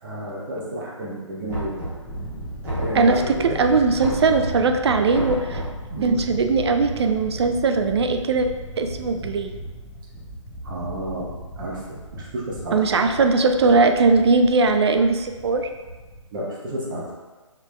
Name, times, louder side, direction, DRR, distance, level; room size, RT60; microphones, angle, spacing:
voice 1, 0.0-1.8 2.7-3.6 5.9-6.2 10.6-12.8 16.3-17.1, right 1 dB, 40° right, -5 dB, 1.1 m, -31 dB
Knock, 1.5-2.2 2.6-3.4 4.0-4.6 5.1-5.8, right 1 dB, 15° right, 1.2 m, -30 dB
Thunder, 2.0-16.3, equal, 10° left, 0.5 m, -36 dB
voice 2, 2.9-5.6 6.0-8.5 8.8-9.5 12.7-15.7, right 4 dB, 55° right, 6 dB, 0.4 m, -19 dB
4.7 x 3.1 x 2.3 m, 1.3 s
figure-of-eight pair, 145°, 17 cm